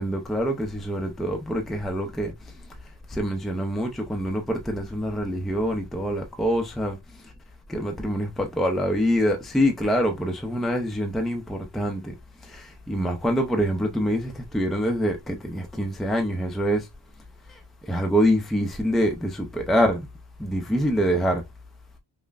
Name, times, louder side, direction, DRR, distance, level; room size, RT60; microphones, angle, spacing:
voice 1, 0.0-2.6 3.1-7.3 7.7-12.1 12.4-16.9 17.5-20.1 20.4-21.4, equal, ahead, 0.5 m, -25 dB
5.3 x 2.1 x 2.4 m
wide cardioid pair, 115°, 46 cm